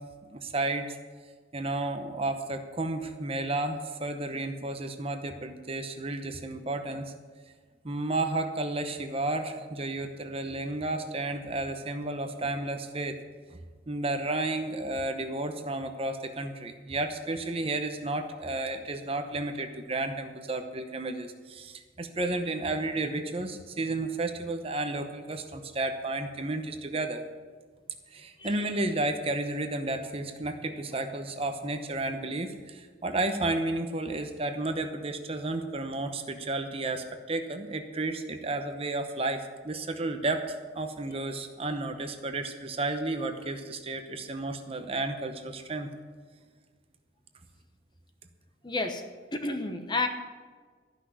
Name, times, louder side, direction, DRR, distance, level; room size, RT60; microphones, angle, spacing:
voice 1, 0.2-1.0 1.5-7.1 7.8-13.2 13.9-27.2 28.1-45.9, right 2 dB, 30° right, 7 dB, 0.8 m, -32 dB
voice 2, 48.6-49.0 49.3-50.1, left 3 dB, 25° left, 5 dB, 1.0 m, -30 dB
13.5 x 6.1 x 9.5 m, 1.5 s
head